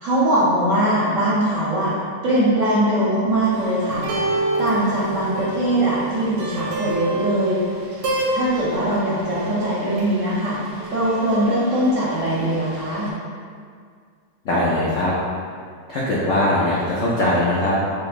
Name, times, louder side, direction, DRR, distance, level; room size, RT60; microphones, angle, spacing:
voice 1, 0.0-1.9 2.2-4.0 4.6-7.6 8.3-10.6 10.9-13.1, right 1 dB, 65° right, -8 dB, 0.8 m, -21 dB
sound 1, 3.5-13.1, right 2 dB, 90° right, 1.3 m, -29 dB
voice 2, 14.4-15.1 15.9-17.8, left 1 dB, 80° left, -6 dB, 0.7 m, -20 dB
4.7 x 2.2 x 2.4 m, 2.1 s
omnidirectional pair, 1.9 m